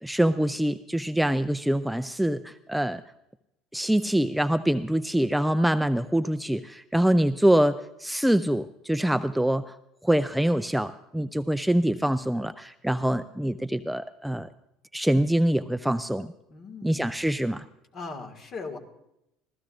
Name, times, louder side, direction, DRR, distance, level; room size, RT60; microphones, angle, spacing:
voice 1, 0.0-3.0 3.7-9.7 10.0-14.5 14.9-16.3 16.8-17.6, right 1 dB, 5° right, 11 dB, 0.4 m, -24 dB
voice 2, 16.5-17.1 17.9-18.8, left 4 dB, 45° left, 5 dB, 1.8 m, -39 dB
25.5 x 14.5 x 2.5 m, 0.83 s
hypercardioid pair, 70°, 0 cm